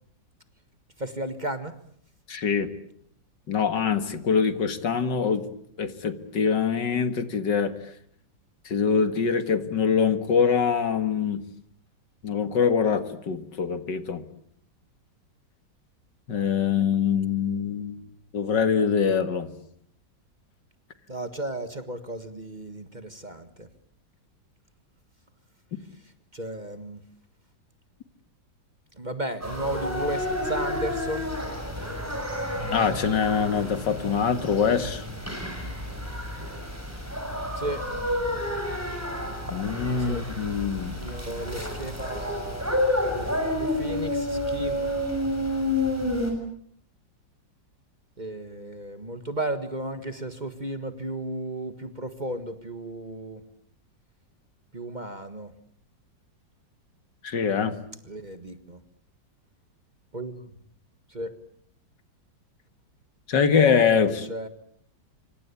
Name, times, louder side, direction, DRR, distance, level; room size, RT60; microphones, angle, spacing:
voice 1, 1.0-1.8 21.1-23.7 26.3-27.0 29.0-31.3 37.6-37.8 40.1-40.3 41.0-42.7 43.1-44.9 48.2-53.4 54.7-55.5 58.1-58.8 60.1-60.5 61.1-61.3 64.1-64.5, right 1 dB, 25° right, 10 dB, 1.6 m, -34 dB
voice 2, 2.3-2.7 3.5-5.4 5.8-7.7 8.7-11.4 12.2-14.2 16.3-18.0 18.3-19.5 32.7-35.1 39.5-41.0 57.2-57.8 63.3-64.3, left 6 dB, 75° left, 11 dB, 2.4 m, -24 dB
sound 1, 29.4-46.3, left 1 dB, 10° right, 6.7 m, -30 dB
26.5 x 25.0 x 8.5 m, 0.67 s
omnidirectional pair, 1.9 m